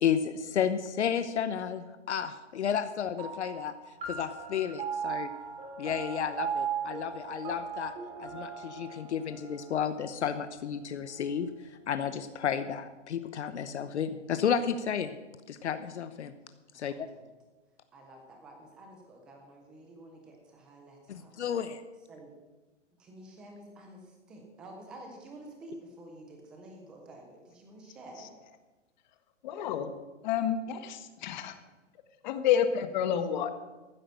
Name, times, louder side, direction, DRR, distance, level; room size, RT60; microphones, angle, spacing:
voice 1, 0.0-3.7 4.1-5.3 5.8-7.9 8.2-11.5 11.9-15.1 15.5-16.3 16.7-17.1 21.1-21.8, left 8 dB, 65° left, 11 dB, 1.0 m, -32 dB
sound 1, 3.2-12.0, right 7 dB, 20° right, 3.1 m, -39 dB
voice 2, 16.7-17.3 17.9-21.3 22.1-22.3 23.0-28.3, right 1 dB, 5° right, 2 dB, 0.3 m, -50 dB
voice 3, 29.4-29.9 30.2-31.5 32.2-33.5, left 9 dB, 40° left, 9 dB, 1.4 m, -29 dB
14.5 x 8.8 x 6.7 m, 1.2 s
hypercardioid pair, 145°, 37 cm